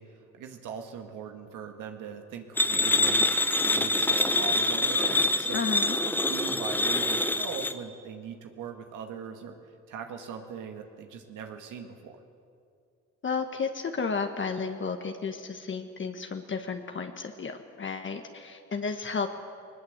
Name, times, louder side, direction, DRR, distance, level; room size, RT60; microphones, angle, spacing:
voice 1, 0.0-5.6 6.0-9.6 9.9-12.2, right 7 dB, 85° right, 4 dB, 2.0 m, -40 dB
sound 1, 2.6-7.7, left 2 dB, 5° left, 1.1 m, -25 dB
voice 2, 5.5-6.0 13.2-19.3, left 5 dB, 40° left, 5 dB, 1.6 m, -32 dB
20.0 x 20.0 x 8.1 m, 2.3 s
cardioid pair, 90°, 30 cm